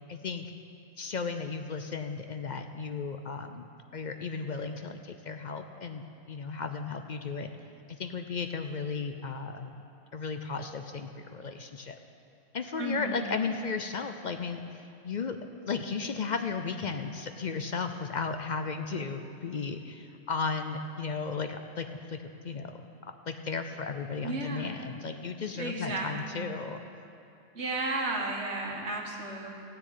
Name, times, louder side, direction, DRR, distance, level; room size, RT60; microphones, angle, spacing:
voice 1, 0.1-0.5 1.0-3.7 3.9-7.5 8.0-9.8 10.1-12.0 12.5-14.6 15.0-15.4 15.7-22.2 22.4-22.8 23.3-26.8, left 5 dB, 50° left, 7 dB, 0.6 m, -35 dB
voice 2, 12.8-13.3 24.2-24.7 25.6-26.5 27.5-29.5, right 2 dB, 90° right, 0 dB, 2.0 m, -33 dB
15.0 x 6.8 x 9.1 m, 2.7 s
omnidirectional pair, 1.1 m